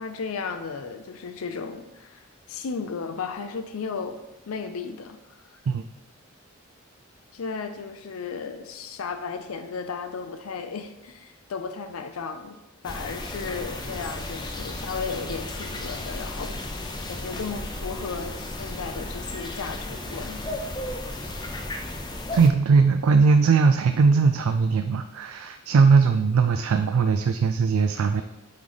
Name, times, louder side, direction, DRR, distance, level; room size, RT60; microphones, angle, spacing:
voice 1, 0.0-4.2 4.5-5.4 7.3-16.6 17.1-20.5, left 5 dB, 90° left, 7 dB, 0.5 m, -35 dB
sound 1, 12.8-22.5, left 1 dB, 20° left, 0.5 m, -34 dB
voice 2, 22.3-28.2, right 5 dB, 85° right, 8 dB, 0.4 m, -20 dB
8.6 x 3.2 x 3.9 m, 0.98 s
head